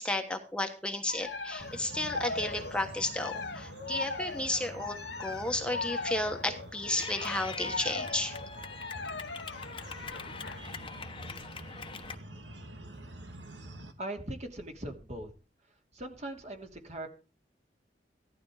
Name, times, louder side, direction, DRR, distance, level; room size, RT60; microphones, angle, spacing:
voice 1, 0.0-8.4, left 1 dB, 5° left, 4 dB, 1.4 m, -33 dB
sound 1, 1.1-10.7, left 3 dB, 85° left, 1.3 m, -39 dB
sound 2, 1.6-13.9, right 1 dB, 85° right, 2.2 m, -47 dB
Clapping / Cheering, 7.0-12.2, left 5 dB, 30° left, 1.2 m, -43 dB
voice 2, 14.0-15.3 15.9-17.1, right 1 dB, 40° right, 4 dB, 2.8 m, -40 dB
15.5 x 12.0 x 4.9 m, 0.35 s
head